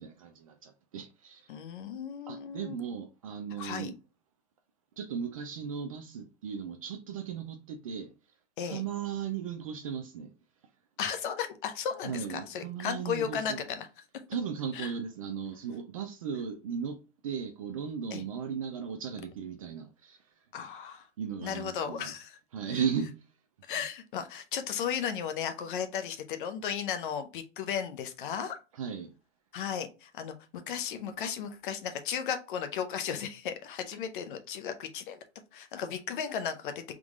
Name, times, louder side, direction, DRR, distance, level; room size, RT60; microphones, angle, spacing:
voice 1, 0.0-1.5 2.3-3.9 5.0-8.1 8.6-10.3 12.0-13.6 14.3-17.0 17.2-20.2 21.2-22.1 22.5-23.1 28.7-29.1, right 7 dB, 30° right, 0.4 m, -36 dB
voice 2, 1.5-2.8 3.6-3.9 8.6-8.8 11.0-13.9 14.7-14.9 18.1-18.2 20.5-21.1 21.4-22.4 22.7-22.8 23.7-28.6 29.5-35.2 35.5-36.8, left 8 dB, 45° left, 0.7 m, -35 dB
3.7 x 3.0 x 3.6 m
hypercardioid pair, 155°, 36 cm